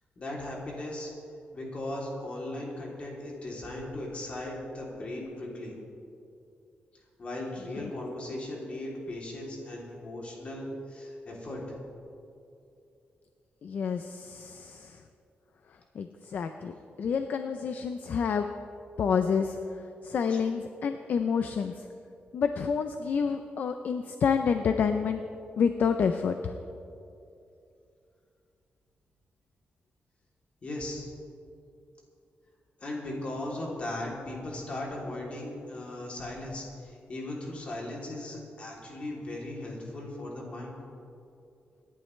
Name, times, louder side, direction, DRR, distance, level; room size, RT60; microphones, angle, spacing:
voice 1, 0.2-1.1 1.5-5.7 7.2-11.6 20.3-20.4 30.6-31.1 32.8-40.8, left 1 dB, 35° left, -3 dB, 3.0 m, -37 dB
voice 2, 13.6-15.0 16.0-18.5 19.0-19.6 20.0-21.8 22.3-25.2 25.6-26.6, left 6 dB, 55° left, 7 dB, 0.5 m, -28 dB
25.0 x 11.0 x 3.3 m, 2.6 s
wide cardioid pair, 165°, 4 cm